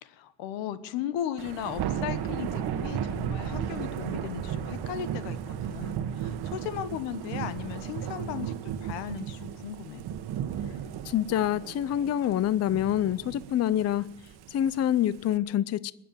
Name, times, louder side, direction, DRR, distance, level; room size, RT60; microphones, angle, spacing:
voice 1, 0.0-10.0, left 10 dB, 90° left, 1.3 m, -36 dB
Thunder / Rain, 1.4-15.4, right 9 dB, 60° right, 1.3 m, -35 dB
voice 2, 11.0-14.2 14.5-15.9, left 11 dB, 35° left, 0.5 m, -26 dB
20.5 x 7.5 x 9.0 m
cardioid pair, 100°, 43 cm